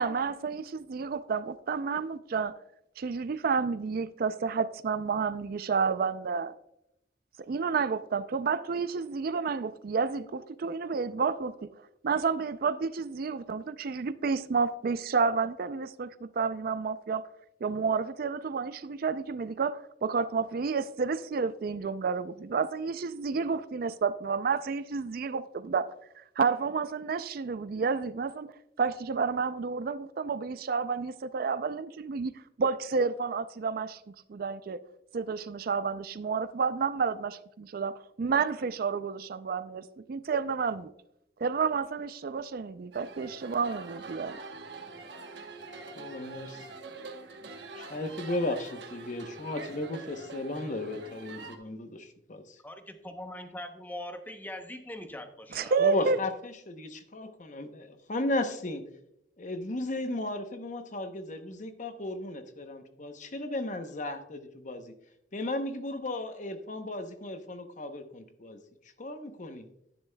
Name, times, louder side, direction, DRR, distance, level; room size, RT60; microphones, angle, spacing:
voice 1, 0.0-2.5 3.0-6.5 7.5-11.5 12.0-17.2 17.6-25.9 26.4-28.5 28.8-32.3 32.6-34.0 34.3-34.8 35.1-40.9 41.4-44.3 55.5-56.2, right 5 dB, 55° right, 0.4 m, -30 dB
sound 1, 42.9-51.6, right 3 dB, 75° right, 1.0 m, -45 dB
voice 2, 46.0-46.7 47.7-52.6 55.8-58.8 59.4-64.9 65.3-68.6 69.0-69.7, left 1 dB, 45° left, 0.8 m, -35 dB
voice 3, 52.6-55.8, left 1 dB, 10° left, 0.8 m, -41 dB
10.5 x 10.0 x 2.2 m
head